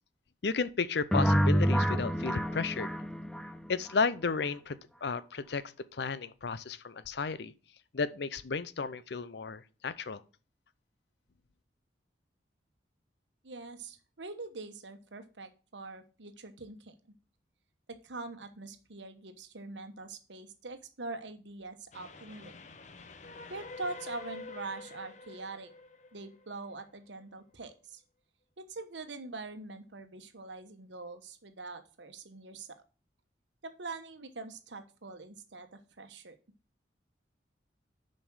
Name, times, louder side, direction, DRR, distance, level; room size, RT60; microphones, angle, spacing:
voice 1, 0.4-2.9 3.7-5.6 5.9-7.5 7.9-10.2, left 4 dB, 65° left, 0.6 m, -33 dB
sound 1, 1.1-4.0, equal, 5° left, 0.4 m, -28 dB
voice 2, 13.4-17.0 17.9-22.5 23.5-25.7 26.1-28.0 28.7-32.7 33.6-36.4, right 3 dB, 80° right, 1.1 m, -43 dB
Train, 21.9-27.2, left 3 dB, 40° left, 0.9 m, -48 dB
7.2 x 5.3 x 6.2 m
head